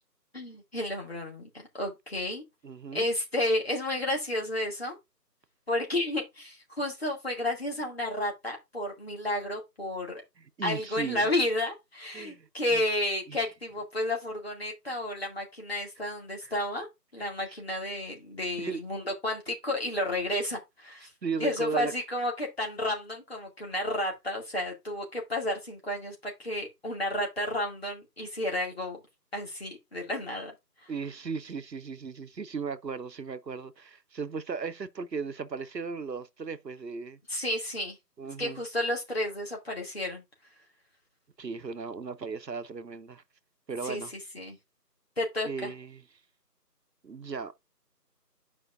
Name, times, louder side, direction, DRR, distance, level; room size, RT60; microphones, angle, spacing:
voice 1, 0.3-2.4 2.9-5.0 5.7-10.2 10.6-16.9 17.1-21.1 21.4-29.0 29.3-30.9 37.3-38.0 38.4-40.2 43.8-44.6 45.2-45.7, left 1 dB, 40° left, 2.3 m, -32 dB
voice 2, 2.6-3.0 10.6-11.2 12.1-12.8 13.3-13.4 16.4-16.5 18.6-18.8 21.2-21.9 30.9-37.2 38.2-38.6 41.4-43.2 43.7-44.1 45.4-46.0 47.0-47.5, right 5 dB, 85° right, 0.9 m, -36 dB
9.6 x 5.0 x 2.5 m
figure-of-eight pair, 170°, 49 cm